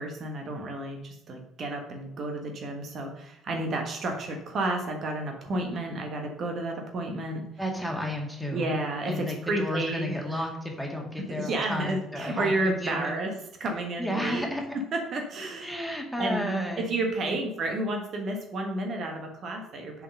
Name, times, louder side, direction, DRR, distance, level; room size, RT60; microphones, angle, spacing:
voice 1, 0.0-7.4 8.5-10.4 11.3-13.3 13.6-14.4 14.7-15.7 16.2-16.5 16.8-20.0, right 2 dB, 45° right, 3 dB, 1.3 m, -31 dB
voice 2, 7.6-8.8 9.1-13.1 14.0-14.8 15.6-16.9 17.3-17.4, equal, ahead, 0 dB, 2.1 m, -32 dB
7.1 x 5.0 x 5.4 m, 0.81 s
figure-of-eight pair, 50°, 0 cm